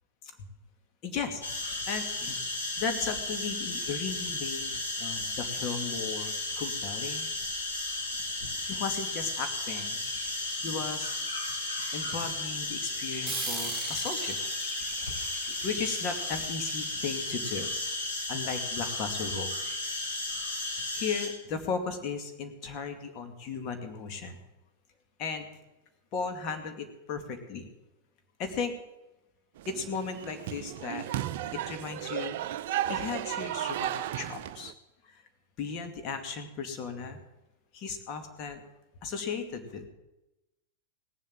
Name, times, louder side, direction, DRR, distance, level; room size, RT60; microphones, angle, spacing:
voice 1, 1.0-1.4 1.9-2.4 2.8-7.3 8.5-10.0 10.5-11.1 11.9-14.4 15.5-17.7 18.3-19.5 20.9-24.4 25.2-25.5 26.1-27.7 28.4-28.7 29.7-31.0 31.5-32.4 32.9-34.7 35.0-35.2 35.6-37.2 37.7-38.6 39.0-39.9, left 5 dB, 40° left, 5 dB, 2.3 m, -36 dB
sound 1, 1.4-21.3, left 2 dB, 75° left, 4.5 m, -34 dB
sound 2, 13.3-18.2, right 6 dB, 15° right, 2.2 m, -42 dB
sound 3, 29.6-34.7, right 12 dB, 55° right, 0.6 m, -34 dB
18.0 x 7.5 x 7.6 m, 0.98 s
figure-of-eight pair, 95°, 0 cm